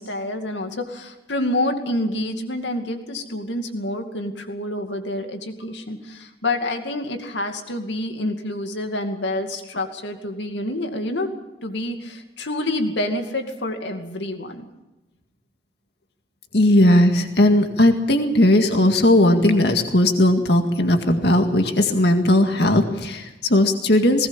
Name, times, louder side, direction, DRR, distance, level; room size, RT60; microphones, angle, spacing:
voice 1, 0.0-11.3 11.6-14.7, left 1 dB, 80° left, 5 dB, 2.4 m, -27 dB
voice 2, 16.5-24.3, left 1 dB, 60° left, 5 dB, 2.0 m, -17 dB
19.5 x 18.5 x 7.3 m, 1.0 s
head